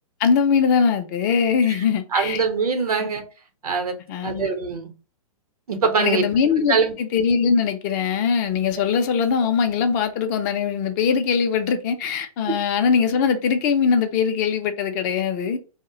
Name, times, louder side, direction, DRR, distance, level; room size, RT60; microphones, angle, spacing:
voice 1, 0.2-2.4 3.0-3.1 4.1-4.5 6.0-15.6, left 6 dB, 30° left, 0.4 m, -21 dB
voice 2, 2.1-3.2 3.6-4.0 4.2-4.9 5.7-6.3 6.7-6.9 12.5-12.6, right 5 dB, 85° right, 0.7 m, -23 dB
2.3 x 2.1 x 3.7 m
hypercardioid pair, 135°, 19 cm